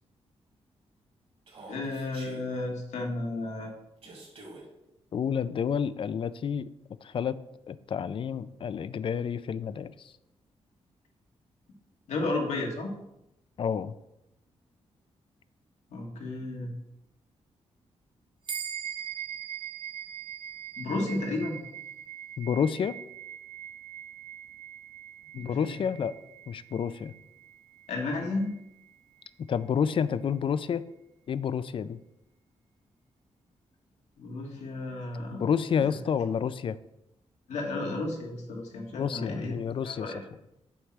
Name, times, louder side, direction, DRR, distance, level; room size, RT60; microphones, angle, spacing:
Human voice, 1.5-2.4 4.0-4.6, right 2 dB, 60° right, 2.3 m, -47 dB
voice 1, 1.7-3.7 12.1-12.9 15.9-16.7 20.8-21.6 25.3-25.7 27.9-28.5 34.2-35.5 37.5-39.6 39.8-40.2, left 2 dB, 90° left, 1 dB, 1.5 m, -33 dB
voice 2, 5.1-6.7 7.0-7.4 7.7-9.9 13.6-13.9 22.4-22.9 25.4-26.1 26.5-27.1 29.5-30.8 31.3-32.0 35.3-36.8 38.9-40.1, left 7 dB, 50° left, 15 dB, 0.4 m, -29 dB
sound 1, 18.5-28.2, right 9 dB, 45° right, 1.0 m, -41 dB
8.0 x 3.2 x 5.9 m, 0.86 s
cardioid pair, 95°, 11 cm